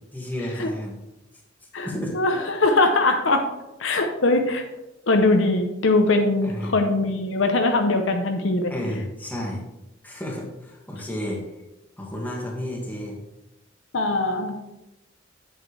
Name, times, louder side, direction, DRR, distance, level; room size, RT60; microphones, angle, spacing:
voice 1, 0.1-1.0 1.8-2.1 6.4-6.7 8.7-9.6 10.0-11.4 12.0-13.2, equal, 10° left, -2 dB, 1.8 m, -31 dB
voice 2, 1.7-3.5 3.8-4.6 5.1-8.7 13.9-14.6, left 2 dB, 70° left, 5 dB, 0.8 m, -21 dB
8.7 x 7.6 x 3.4 m, 0.94 s
head